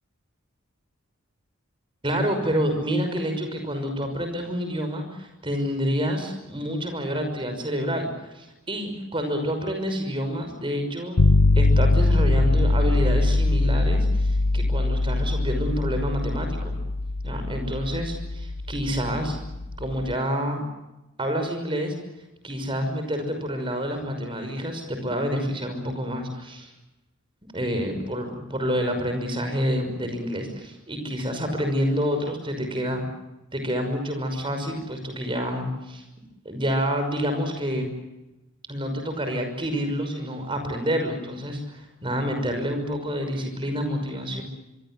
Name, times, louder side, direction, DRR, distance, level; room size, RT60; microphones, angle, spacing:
voice 1, 2.0-11.2 11.6-16.8 17.2-19.4 19.8-20.7 21.2-21.9 22.4-26.7 27.4-33.0 33.5-36.0 36.4-37.9 38.7-44.4, equal, 25° right, 6 dB, 5.8 m, -28 dB
sound 1, 11.2-20.1, left 2 dB, 90° left, 1.1 m, -22 dB
25.5 x 23.5 x 7.6 m, 0.97 s
head